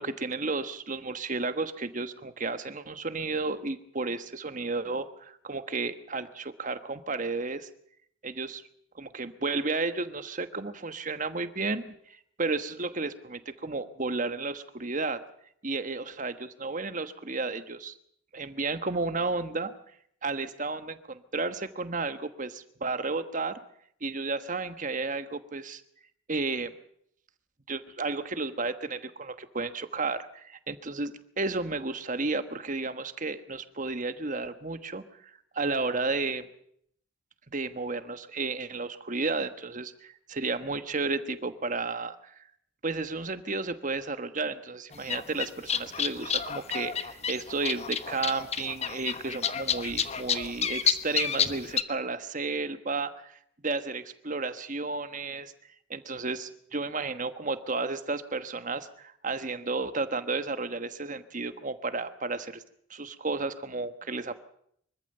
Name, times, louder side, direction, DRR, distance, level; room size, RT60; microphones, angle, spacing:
voice 1, 0.0-7.7 8.2-8.6 8.9-15.2 15.6-17.9 18.3-19.7 20.2-23.6 24.0-25.8 26.3-26.7 27.7-36.5 37.5-42.3 42.8-53.4 53.6-55.5 55.9-62.6 62.9-64.4, right 3 dB, 40° right, 10 dB, 1.3 m, -32 dB
sound 1, 44.9-51.8, left 7 dB, 30° left, 1.1 m, -30 dB
24.5 x 14.5 x 7.9 m, 0.69 s
head